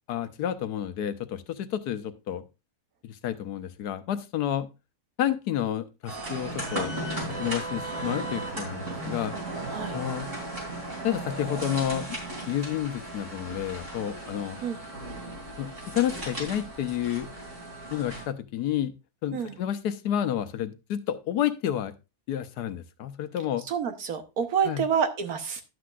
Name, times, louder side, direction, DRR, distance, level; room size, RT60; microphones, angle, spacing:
voice 1, 0.1-2.4 3.0-4.7 5.2-6.9 7.4-9.3 9.9-10.3 11.0-12.2 12.5-14.6 15.6-17.3 17.9-18.9 19.2-21.9 22.3-23.6 24.7-24.8, left 11 dB, 85° left, 11 dB, 1.3 m, -30 dB
sound 1, 6.1-18.2, right 2 dB, 50° right, 3.6 m, -36 dB
voice 2, 9.7-10.0 14.6-14.8 19.3-19.6 23.7-25.6, right 7 dB, 70° right, 7 dB, 1.6 m, -28 dB
11.0 x 7.8 x 2.5 m, 0.27 s
omnidirectional pair, 1.7 m